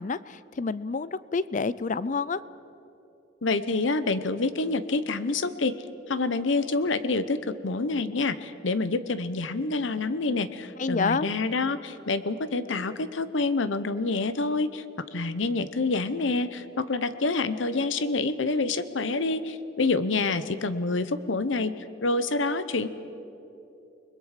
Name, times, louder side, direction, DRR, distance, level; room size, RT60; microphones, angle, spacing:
voice 1, 0.0-2.4 10.8-11.3, left 4 dB, 40° left, 18 dB, 0.4 m, -28 dB
voice 2, 3.4-5.8 6.1-21.7 22.0-22.9, left 3 dB, 75° left, 13 dB, 0.9 m, -27 dB
29.5 x 21.0 x 5.0 m, 2.9 s
head